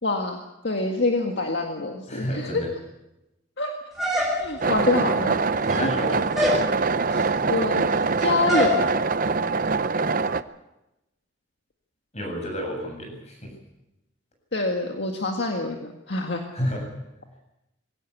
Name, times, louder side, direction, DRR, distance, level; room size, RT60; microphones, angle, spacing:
voice 1, 0.0-2.6 3.6-3.7 4.4-5.5 5.8-5.9 7.1-7.8 8.2-8.8 14.5-16.4, left 2 dB, 60° left, 2 dB, 1.9 m, -26 dB
voice 2, 2.1-2.7 5.7-6.2 12.1-13.5 16.5-16.9, equal, 35° left, 2 dB, 7.6 m, -30 dB
sound 1, 4.0-4.7 5.5-6.0 6.3-6.7 8.5-8.8, left 1 dB, ahead, 5.8 m, -24 dB
sound 2, 4.6-10.4, right 4 dB, 45° right, 0.7 m, -24 dB
22.0 x 16.5 x 8.3 m, 0.94 s
head